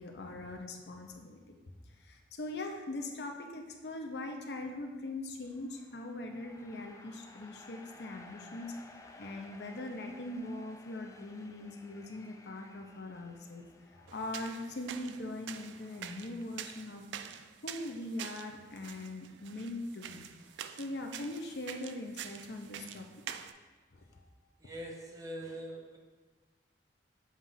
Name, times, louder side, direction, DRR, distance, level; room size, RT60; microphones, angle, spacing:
voice 1, 0.0-1.5 2.0-8.7 9.2-13.6 13.9-17.0 17.6-20.2 20.8-23.1 23.9-24.2, left 2 dB, 65° left, 3 dB, 0.6 m, -41 dB
sound 1, 5.4-17.0, left 2 dB, 20° left, 0.3 m, -57 dB
sound 2, 14.1-23.5, right 9 dB, 85° right, 0.3 m, -47 dB
voice 2, 24.6-26.0, right 1 dB, 20° right, 0 dB, 0.7 m, -43 dB
7.3 x 2.4 x 5.5 m, 1.3 s
head